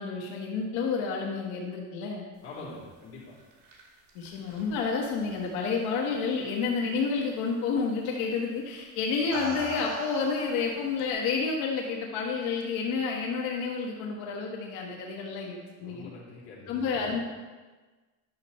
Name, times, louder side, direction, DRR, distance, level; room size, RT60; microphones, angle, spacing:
voice 1, 0.0-2.2 4.1-16.1 16.7-17.2, left 5 dB, 90° left, -1 dB, 1.4 m, -30 dB
voice 2, 2.4-3.3 15.8-17.2, left 3 dB, 40° left, -6 dB, 3.3 m, -45 dB
sound 1, 3.2-6.1 6.5-6.9 8.1-8.3 9.0-11.1, right 1 dB, 65° right, 2.6 m, -41 dB
10.5 x 6.8 x 4.2 m, 1.3 s
cardioid pair, 150°, 36 cm